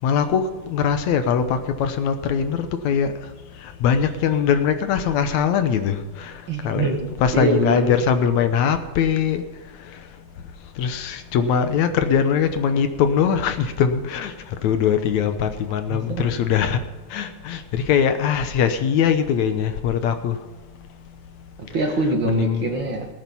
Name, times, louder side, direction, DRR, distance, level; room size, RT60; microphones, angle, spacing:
voice 1, 0.0-3.1 3.6-6.3 6.6-9.4 10.8-14.3 14.6-16.8 17.1-20.4 22.3-22.7, left 7 dB, 75° left, 9 dB, 2.2 m, -21 dB
voice 2, 6.5-7.1 7.3-7.9 15.9-16.3 21.6-23.0, right 2 dB, 45° right, 2 dB, 2.1 m, -24 dB
18.0 x 9.4 x 5.5 m, 1.2 s
omnidirectional pair, 3.4 m